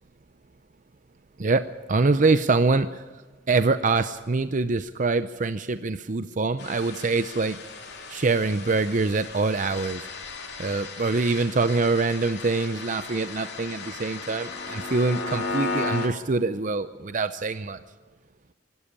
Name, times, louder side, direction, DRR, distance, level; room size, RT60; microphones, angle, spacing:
voice 1, 1.9-3.0 3.5-7.6 8.1-10.1 10.6-17.8, right 3 dB, 45° right, 11 dB, 0.6 m, -24 dB
sound 1, 6.6-16.1, left 3 dB, 60° left, 3.5 m, -35 dB
25.5 x 12.5 x 8.5 m, 1.3 s
head